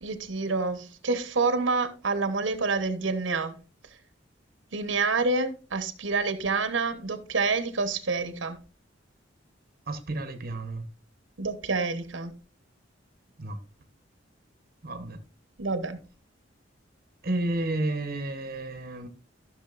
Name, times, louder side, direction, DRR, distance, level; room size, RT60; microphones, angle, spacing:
voice 1, 0.0-3.5 4.7-8.6 11.4-12.3 15.6-16.0, right 3 dB, 85° right, 1.0 m, -28 dB
voice 2, 9.9-10.9 13.4-13.6 14.8-15.2 17.2-19.1, right 2 dB, 50° right, 1.0 m, -31 dB
13.5 x 6.4 x 2.5 m
head